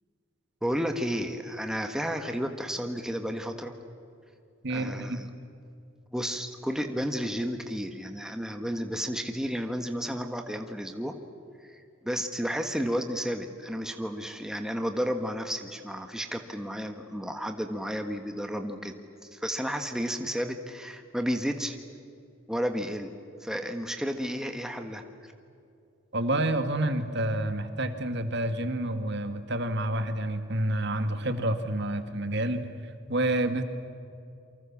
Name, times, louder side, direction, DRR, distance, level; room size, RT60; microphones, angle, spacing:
voice 1, 0.6-3.7 4.7-5.3 6.1-11.2 11.6-18.9 19.3-21.8 22.5-23.1 23.4-25.3, equal, 5° right, 5 dB, 1.4 m, -32 dB
voice 2, 4.6-5.2 26.1-32.7 33.1-33.6, right 1 dB, 60° right, 8 dB, 1.9 m, -28 dB
28.5 x 24.5 x 7.3 m, 2.6 s
head